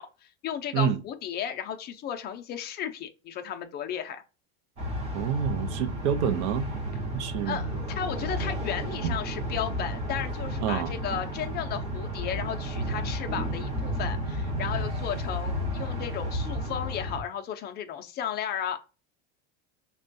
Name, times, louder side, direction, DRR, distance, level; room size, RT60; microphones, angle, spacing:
voice 1, 0.0-4.2 7.5-18.8, left 9 dB, 30° left, 0.4 m, -34 dB
sound 1, 4.8-17.2, equal, 20° right, 0.6 m, -32 dB
voice 2, 5.1-6.7 7.1-7.6 9.0-9.2 10.6-10.9, right 8 dB, 85° right, 0.6 m, -28 dB
5.4 x 2.2 x 2.5 m
cardioid pair, 155°, 34 cm